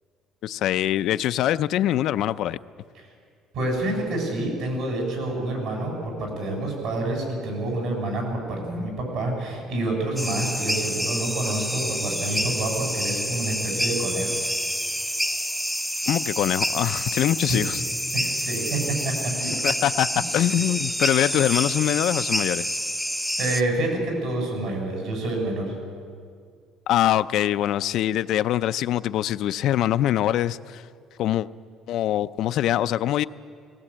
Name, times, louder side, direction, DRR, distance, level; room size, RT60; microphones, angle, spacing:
voice 1, 0.4-2.6 16.1-17.8 19.6-22.8 26.9-30.9 31.2-31.5 31.9-33.2, left 12 dB, 60° left, 13 dB, 0.4 m, -23 dB
voice 2, 3.5-14.3 18.1-18.8 19.0-19.1 19.4-19.5 20.6-20.7 23.4-25.7, right 2 dB, 65° right, 1 dB, 6.9 m, -28 dB
sound 1, 10.2-23.6, equal, 5° right, 0.7 m, -28 dB
18.0 x 18.0 x 8.6 m, 2.2 s
cardioid pair, 155°, 0 cm